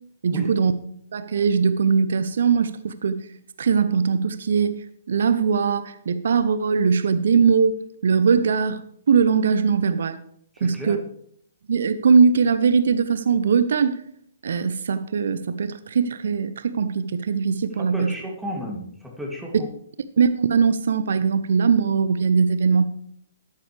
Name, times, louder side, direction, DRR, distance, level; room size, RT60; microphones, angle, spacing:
voice 1, 0.2-0.7 1.1-3.3 3.6-10.2 10.6-11.0 11.7-14.0 14.4-18.1 20.2-22.8, right 5 dB, 60° right, 13 dB, 0.7 m, -20 dB
voice 2, 10.6-11.0 17.9-18.9 19.2-19.5, equal, 5° right, -2 dB, 2.7 m, -32 dB
12.5 x 11.5 x 3.4 m, 0.67 s
figure-of-eight pair, 125°, 0 cm